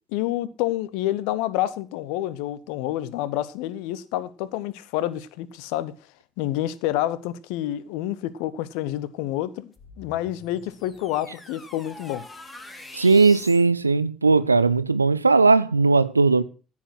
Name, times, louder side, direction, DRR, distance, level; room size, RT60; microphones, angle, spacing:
voice 1, 0.1-5.9 6.4-12.3, left 14 dB, 65° left, 0.8 m, -28 dB
sound 1, 9.7-13.7, left 1 dB, 20° left, 2.4 m, -44 dB
voice 2, 13.0-16.4, right 4 dB, 85° right, 0.5 m, -18 dB
14.0 x 7.4 x 6.1 m
figure-of-eight pair, 50°, 0 cm